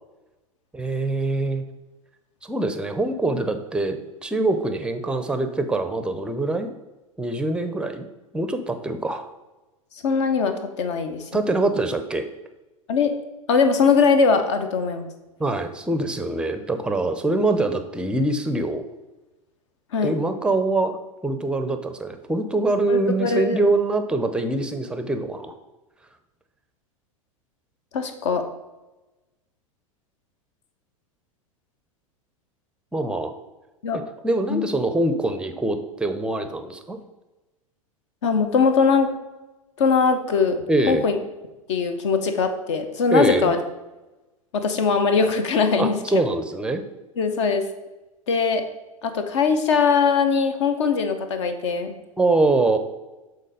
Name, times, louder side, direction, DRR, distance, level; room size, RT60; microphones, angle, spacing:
voice 1, 0.7-1.6 2.4-6.7 7.2-8.1 8.3-9.3 11.3-12.3 15.4-18.8 20.0-25.6 32.9-33.3 34.2-37.0 40.7-41.1 43.1-43.5 45.8-46.8 52.2-52.8, right 2 dB, 5° right, 8 dB, 0.6 m, -24 dB
voice 2, 10.0-11.4 12.9-13.1 13.5-15.1 19.9-20.1 22.9-23.6 27.9-28.4 33.8-34.0 34.5-34.7 38.2-39.1 39.8-41.2 41.7-43.6 44.5-46.2 47.2-47.6 48.3-48.6 49.0-51.9, left 5 dB, 55° left, 8 dB, 0.9 m, -21 dB
7.6 x 3.9 x 4.8 m, 1.1 s
figure-of-eight pair, 90°, 18 cm